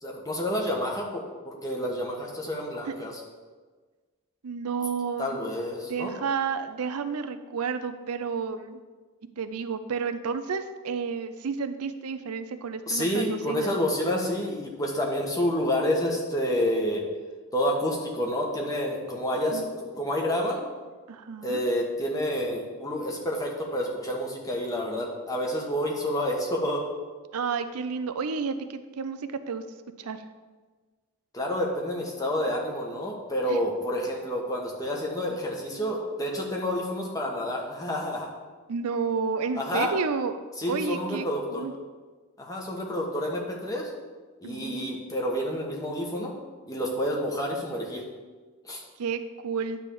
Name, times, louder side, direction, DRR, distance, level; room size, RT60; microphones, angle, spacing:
voice 1, 0.0-3.2 5.2-6.1 12.9-17.0 17.5-20.6 21.4-26.8 31.3-38.3 39.5-39.9 40.6-41.7 42.4-43.9 44.4-46.3 46.7-48.1 48.6-48.8, equal, 15° left, -1 dB, 1.1 m, -29 dB
voice 2, 4.4-5.4 5.9-8.8 9.4-13.8 19.5-19.7 21.1-21.6 27.3-29.6 30.0-30.3 33.5-33.6 38.7-40.4 40.7-41.7 44.4-44.8 49.0-49.8, right 5 dB, 85° right, 10 dB, 0.5 m, -31 dB
9.9 x 3.4 x 6.9 m, 1.4 s
head